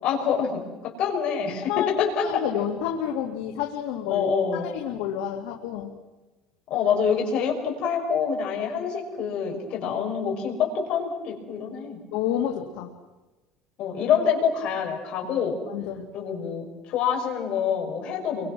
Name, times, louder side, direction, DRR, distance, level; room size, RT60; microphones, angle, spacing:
voice 1, 0.0-2.4 4.1-4.7 6.7-12.0 13.8-15.6 16.1-18.5, left 7 dB, 45° left, 0 dB, 6.0 m, -26 dB
voice 2, 1.6-1.9 2.2-4.2 4.5-5.9 12.1-12.9 15.7-16.1, left 10 dB, 80° left, 2 dB, 2.3 m, -29 dB
30.0 x 24.0 x 6.2 m, 1.2 s
cardioid pair, 170°, 2 cm